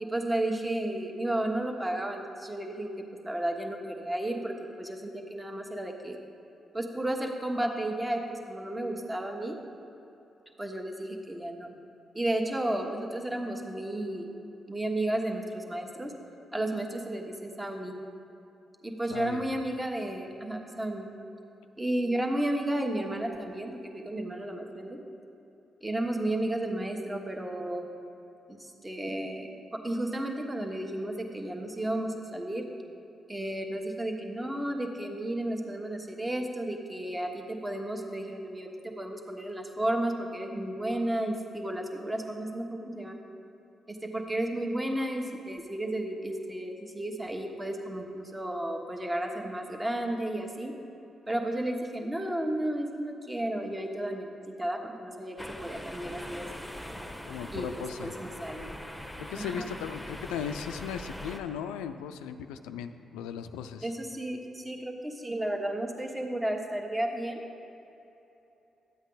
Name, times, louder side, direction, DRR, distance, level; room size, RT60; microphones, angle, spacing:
voice 1, 0.0-2.9 3.2-6.2 6.7-9.6 10.6-11.7 12.1-14.3 14.7-16.1 16.5-17.9 18.8-21.1 21.8-25.0 25.8-27.9 28.5-32.6 33.3-43.2 43.9-50.7 51.3-56.5 57.5-58.7 59.4-59.7 63.8-67.4, right 1 dB, 20° right, 2 dB, 1.4 m, -33 dB
voice 2, 19.1-19.4 57.3-58.1 59.2-63.9, left 8 dB, 90° left, 9 dB, 0.3 m, -37 dB
sound 1, 55.4-61.4, equal, 5° left, 1.1 m, -42 dB
11.0 x 8.0 x 4.0 m, 3.0 s
supercardioid pair, 45°, 0 cm